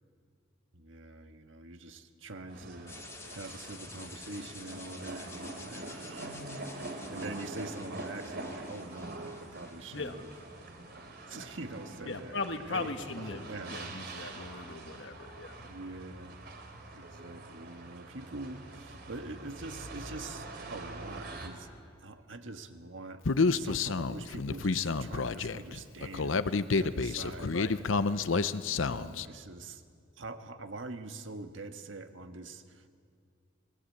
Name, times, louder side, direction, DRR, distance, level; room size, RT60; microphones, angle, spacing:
voice 1, 0.7-10.4 11.3-12.9 13.5-14.1 15.6-16.4 16.9-21.7 22.0-28.2 28.7-29.8 30.2-32.9, right 2 dB, 80° right, 7 dB, 1.6 m, -44 dB
sound 1, 2.5-21.5, right 2 dB, 55° right, 3.2 m, -44 dB
sound 2, 2.9-10.9, left 3 dB, 15° left, 2.1 m, -51 dB
voice 2, 12.1-15.5 27.5-27.7, left 3 dB, 65° left, 7 dB, 1.6 m, -38 dB
Human voice, 23.3-29.3, left 4 dB, 90° left, 0.7 m, -29 dB
28.5 x 20.0 x 8.6 m, 2.3 s
head